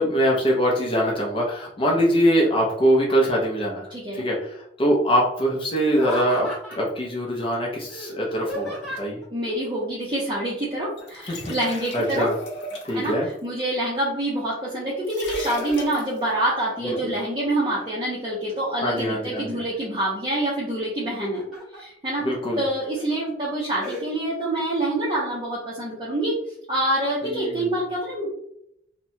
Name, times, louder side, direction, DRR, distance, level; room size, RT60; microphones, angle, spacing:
voice 1, 0.0-3.9 4.2-6.5 6.8-9.2 11.3-11.5 11.9-12.3 12.9-13.3 16.8-16.9 18.8-19.5 22.2-22.6 27.2-27.7, equal, 30° left, -3 dB, 0.5 m, -23 dB
voice 2, 3.9-4.3 9.3-12.3 12.9-21.4 21.7-22.3 22.6-26.4 26.7-28.5, right 1 dB, 25° right, -6 dB, 0.5 m, -26 dB
Laughter, 5.9-7.0 7.9-9.3 11.0-11.5 11.8-13.4 14.0-14.6 15.0-16.3 16.7-17.3 17.8-18.5 19.0-19.9 21.0-21.8 22.3-22.4 23.0-23.2 23.8-24.0, equal, ahead, 1.0 m, -37 dB
sound 1, 11.0-13.1 15.0-16.2, left 1 dB, 70° left, 0.7 m, -37 dB
2.8 x 2.1 x 2.7 m, 0.73 s
head